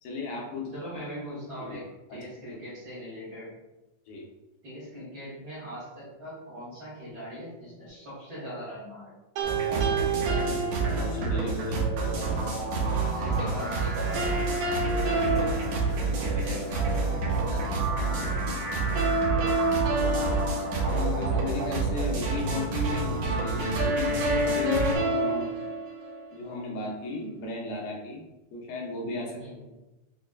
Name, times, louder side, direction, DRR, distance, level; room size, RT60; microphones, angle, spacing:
voice 1, 0.0-0.7 1.7-1.8 2.1-2.2 4.1-4.2 9.7-10.1 11.0-11.8 16.3-16.5 20.8-25.6 26.3-28.2 28.5-29.7, left 3 dB, 80° left, -2 dB, 2.4 m, -35 dB
voice 2, 0.7-3.5 4.6-9.1 13.1-14.0 14.9-15.7 16.3-17.0 17.5-18.1 29.4-29.6, equal, 55° right, -10 dB, 1.3 m, -41 dB
sound 1, 9.4-25.0, right 3 dB, 70° right, 2.2 m, -28 dB
sound 2, 9.4-11.5 14.2-16.6 19.0-21.5 23.8-26.6, right 2 dB, 85° right, 2.5 m, -29 dB
sound 3, 12.0-18.2, left 3 dB, 60° left, 1.0 m, -40 dB
6.1 x 2.3 x 2.2 m, 1.0 s
omnidirectional pair, 3.9 m